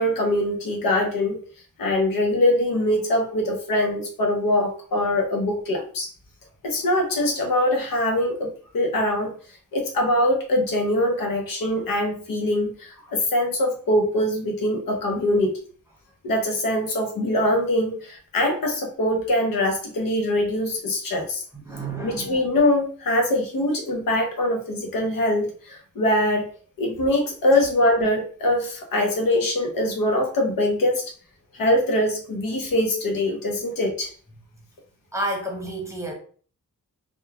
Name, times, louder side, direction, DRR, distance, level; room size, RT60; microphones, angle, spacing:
voice 1, 0.0-1.4 1.8-6.1 6.6-9.3 9.7-15.6 16.2-21.4 22.0-26.5 26.8-31.0 31.5-34.1, left 1 dB, 85° left, 0.8 m, -23 dB
voice 2, 21.5-22.5 35.1-36.2, right 1 dB, 10° right, 0.9 m, -30 dB
2.9 x 2.3 x 2.3 m
cardioid pair, 65°, 33 cm